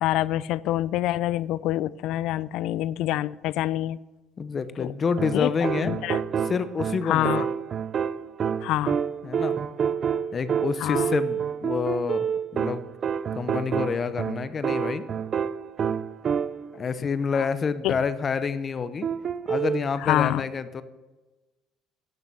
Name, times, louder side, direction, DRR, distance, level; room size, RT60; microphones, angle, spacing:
voice 1, 0.0-4.0 4.8-4.9 5.3-5.5 5.8-6.2 7.1-7.4 8.6-9.0 10.8-11.1 17.4-17.5 17.8-17.9 20.0-20.4, left 14 dB, 65° left, 21 dB, 0.4 m, -26 dB
voice 2, 4.4-5.9 6.4-7.5 9.2-9.6 10.3-12.2 12.5-12.9 13.3-15.1 16.7-19.1 19.5-20.8, left 5 dB, 30° left, 13 dB, 0.7 m, -28 dB
sound 1, 5.2-16.8 19.0-19.9, right 7 dB, 40° right, 0.5 m, -28 dB
12.0 x 6.9 x 6.0 m, 1.2 s
cardioid pair, 120°, 0 cm